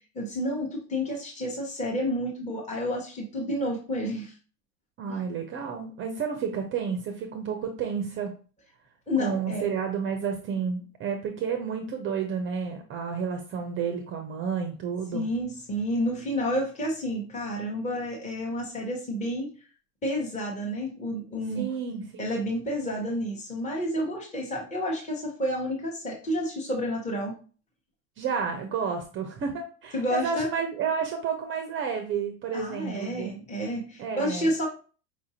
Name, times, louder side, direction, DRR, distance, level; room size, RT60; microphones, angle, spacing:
voice 1, 0.1-4.3 5.1-5.2 9.1-9.6 15.1-19.5 20.0-21.7 22.2-27.3 29.9-30.5 32.5-34.7, equal, 15° left, -1 dB, 0.9 m, -30 dB
voice 2, 5.0-8.3 9.2-15.3 21.5-22.2 28.2-33.3 34.0-34.5, right 6 dB, 30° right, 4 dB, 0.5 m, -31 dB
4.9 x 2.5 x 2.8 m, 0.37 s
supercardioid pair, 120°, 46 cm